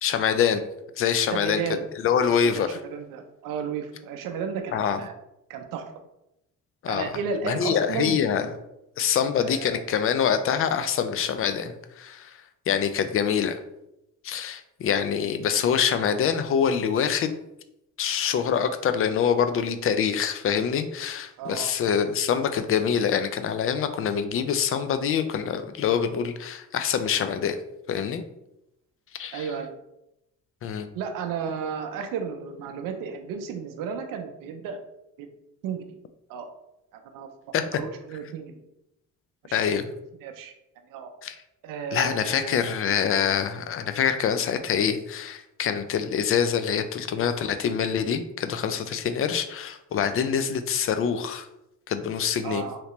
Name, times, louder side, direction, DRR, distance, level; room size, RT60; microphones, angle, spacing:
voice 1, 0.0-0.6 1.0-1.6 1.9-2.8 4.7-5.0 6.8-7.1 7.4-8.6 9.0-13.6 14.2-17.4 18.0-27.6 27.9-28.2 29.1-29.5 30.6-30.9 37.5-37.8 39.5-39.9 41.2-41.4 41.9-51.5 51.9-52.7, left 7 dB, 45° left, 10 dB, 0.4 m, -25 dB
voice 2, 1.3-1.8 2.4-5.1 5.5-5.9 6.9-8.2 9.4-9.8 10.8-10.9 21.4-21.7 29.3-29.7 30.9-34.8 35.2-35.3 35.6-35.8 36.3-36.5 37.1-37.3 37.8-38.6 39.4-39.6 40.2-40.5 40.9-41.1 41.6-42.8 52.4-52.8, right 6 dB, 90° right, 5 dB, 0.5 m, -33 dB
3.1 x 2.9 x 2.9 m, 0.86 s
cardioid pair, 85°, 32 cm